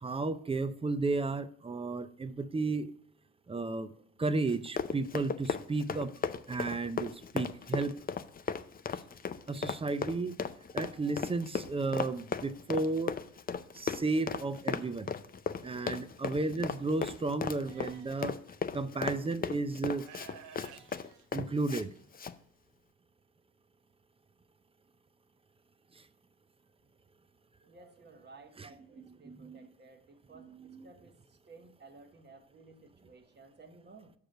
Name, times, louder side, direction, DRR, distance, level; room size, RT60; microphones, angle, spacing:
voice 1, 0.0-2.9 3.5-3.9 4.2-6.1 6.5-7.9 9.5-10.4 10.7-13.2 13.7-15.1 15.6-18.4 18.7-20.1 20.7-20.8 21.3-21.9 28.6-29.6 30.3-30.9, right 3 dB, 20° right, 0.5 m, -33 dB
Run, 4.5-21.8 22.1-22.3, left 6 dB, 30° left, 0.5 m, -36 dB
Livestock farm animals working animals, 17.6-18.3 19.2-19.3 20.0-22.0, right 8 dB, 80° right, 0.7 m, -53 dB
voice 2, 27.6-31.2 31.4-34.1, right 3 dB, 35° right, 1.1 m, -56 dB
6.4 x 4.8 x 6.5 m
cardioid pair, 90°, 30 cm